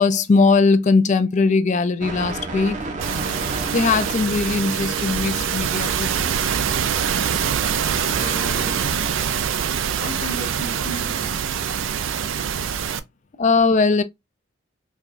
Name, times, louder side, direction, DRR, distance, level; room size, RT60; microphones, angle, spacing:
voice 1, 0.0-2.8 3.7-6.5 13.4-14.0, left 4 dB, 40° left, 0.4 m, -19 dB
sound 1, 2.0-9.1, right 3 dB, 40° right, 0.7 m, -34 dB
sound 2, 3.0-13.0, right 7 dB, 80° right, 0.4 m, -24 dB
voice 2, 7.5-9.2 9.6-11.5, equal, 80° left, 1.0 m, -36 dB
4.7 x 2.3 x 2.5 m
head